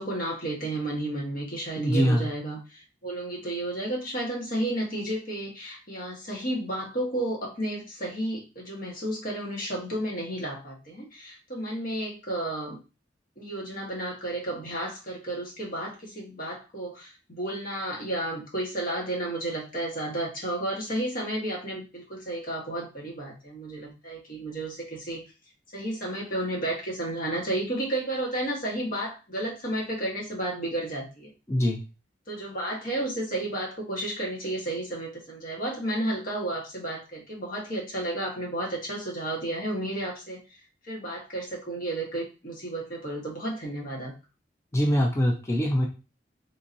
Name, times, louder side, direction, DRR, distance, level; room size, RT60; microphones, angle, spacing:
voice 1, 0.0-12.8 13.4-25.2 25.7-31.3 32.3-40.4 40.8-44.1, right 1 dB, 50° left, -2 dB, 1.3 m, -32 dB
voice 2, 1.8-2.2 31.5-31.8 44.7-45.9, equal, 15° left, 0 dB, 0.5 m, -23 dB
3.7 x 2.7 x 2.6 m, 0.31 s
head